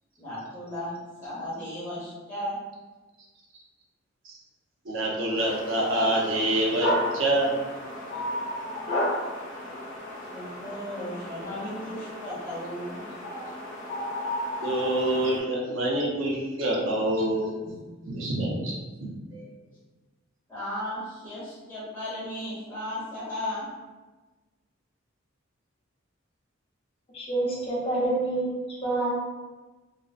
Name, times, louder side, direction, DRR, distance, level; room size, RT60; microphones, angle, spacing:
voice 1, 0.2-0.9 1.2-2.6 10.3-13.0 20.5-23.7, left 1 dB, 10° left, -10 dB, 1.1 m, -35 dB
voice 2, 4.9-7.6 14.6-17.7 18.0-18.7 19.0-19.5, right 1 dB, 75° right, -2 dB, 0.6 m, -26 dB
sound 1, 5.4-15.4, left 1 dB, 80° left, 0.7 m, -33 dB
voice 3, 27.1-29.2, right 2 dB, 30° left, -5 dB, 0.6 m, -27 dB
2.5 x 2.1 x 2.4 m, 1.2 s
head